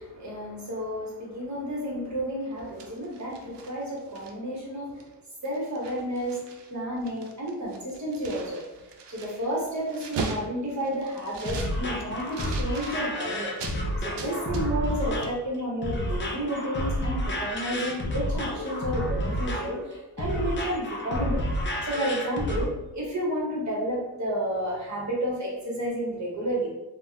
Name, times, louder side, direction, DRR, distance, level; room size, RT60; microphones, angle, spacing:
voice 1, 0.0-5.0 5.4-6.4 6.7-8.6 9.1-13.5 14.0-21.4 21.8-26.7, equal, 45° right, -4 dB, 1.0 m, -31 dB
sound 1, 2.5-4.6 5.0-5.1 5.4-6.7 7.0-13.8 14.2-15.0 15.2-15.4, right 4 dB, 85° right, 0.5 m, -39 dB
sound 2, 11.2-22.7, equal, 30° left, 0.4 m, -30 dB
3.3 x 2.0 x 2.7 m, 1.1 s
wide cardioid pair, 135°, 41 cm